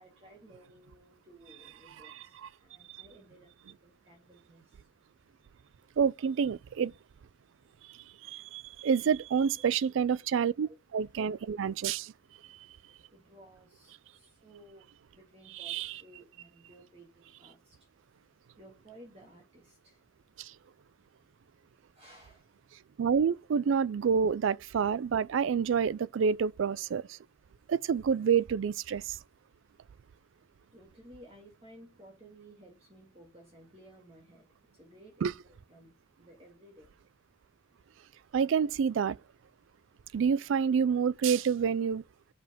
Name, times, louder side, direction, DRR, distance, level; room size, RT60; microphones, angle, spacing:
voice 1, 0.0-4.9 9.6-9.7 10.6-10.8 11.1-11.2 12.2-17.9 18.6-20.0 21.9-22.5 30.7-36.9, right 1 dB, 30° right, 1.8 m, -57 dB
voice 2, 6.0-6.9 8.2-12.1 12.5-12.6 15.6-16.0 20.4-20.5 23.0-27.2 27.7-29.2 35.2-35.3 38.3-39.2 40.1-42.0, right 6 dB, 75° right, 0.3 m, -28 dB
7.3 x 5.6 x 6.0 m
head